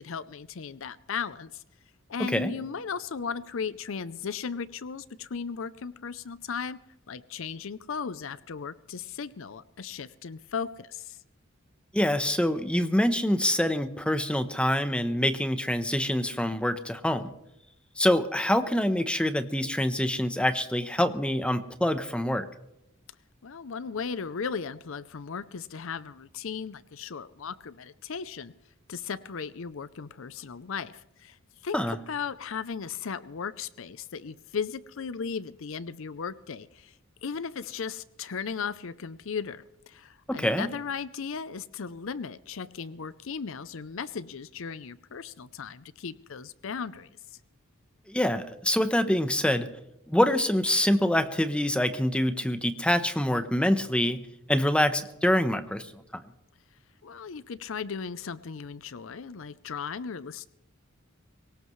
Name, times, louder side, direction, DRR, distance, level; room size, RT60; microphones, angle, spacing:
voice 1, 0.0-1.6 2.1-6.8 7.1-11.2 23.4-28.5 28.9-31.4 31.6-36.9 37.2-47.1 57.0-60.5, left 6 dB, 70° left, 16 dB, 0.6 m, -36 dB
voice 2, 2.2-2.5 11.9-17.3 18.0-22.5 31.7-31.9 40.3-40.7 48.1-49.7 50.1-54.2 54.5-55.9, left 1 dB, 5° left, 10 dB, 0.9 m, -25 dB
23.0 x 19.0 x 3.2 m, 0.85 s
head